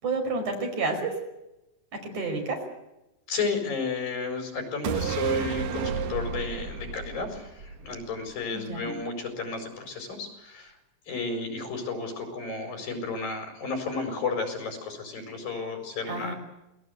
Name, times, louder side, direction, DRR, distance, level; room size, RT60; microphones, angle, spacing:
voice 1, 0.0-1.1 2.1-2.6 8.5-9.0 16.1-16.3, right 3 dB, 60° right, 3 dB, 6.8 m, -29 dB
voice 2, 3.3-10.8 11.1-16.3, left 4 dB, 85° left, 5 dB, 6.7 m, -33 dB
sound 1, 4.8-8.4 8.7-8.8, right 7 dB, 75° right, 3.0 m, -31 dB
28.0 x 19.5 x 8.1 m, 0.93 s
omnidirectional pair, 4.0 m